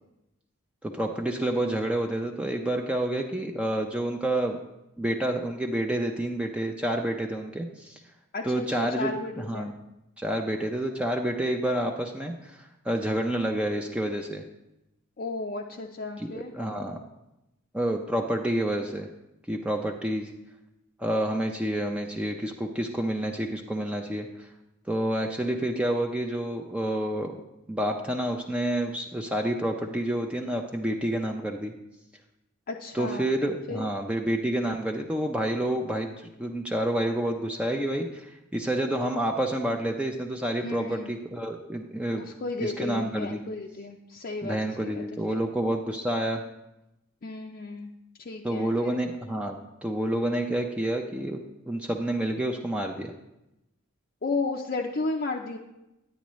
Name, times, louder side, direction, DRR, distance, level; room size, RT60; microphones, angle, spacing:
voice 1, 0.8-4.6 5.0-8.0 8.4-9.7 10.2-14.4 16.2-17.0 17.7-19.1 19.5-20.3 21.0-24.5 24.9-27.4 27.7-31.7 32.9-42.2 42.6-43.4 44.4-46.4 48.4-53.1, right 1 dB, 5° right, 2 dB, 0.5 m, -29 dB
voice 2, 8.3-9.7 15.2-16.5 32.7-33.3 33.7-33.8 40.6-41.1 42.1-45.4 47.2-47.9 48.2-49.0 54.2-55.6, left 3 dB, 45° left, 0 dB, 0.5 m, -34 dB
10.0 x 9.2 x 3.1 m, 0.91 s
head